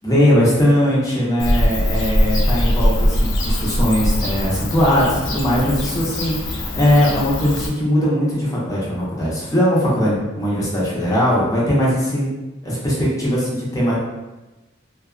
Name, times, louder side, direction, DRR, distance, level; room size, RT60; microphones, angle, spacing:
voice 1, 0.0-12.3 12.6-13.9, equal, 20° left, -7 dB, 0.7 m, -19 dB
Bird / Cricket, 1.4-7.7, equal, 85° left, 0.5 m, -21 dB
2.5 x 2.4 x 2.3 m, 1.1 s
head